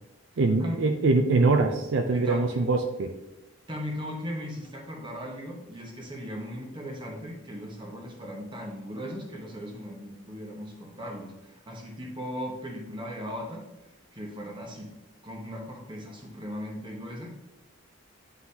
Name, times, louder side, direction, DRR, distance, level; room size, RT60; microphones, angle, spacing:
voice 1, 0.4-3.1, right 3 dB, 60° right, 5 dB, 0.4 m, -23 dB
voice 2, 2.1-2.7 3.7-13.6 14.1-14.9 15.2-17.3, equal, 20° right, 0 dB, 1.0 m, -38 dB
9.5 x 4.0 x 2.8 m, 0.98 s
head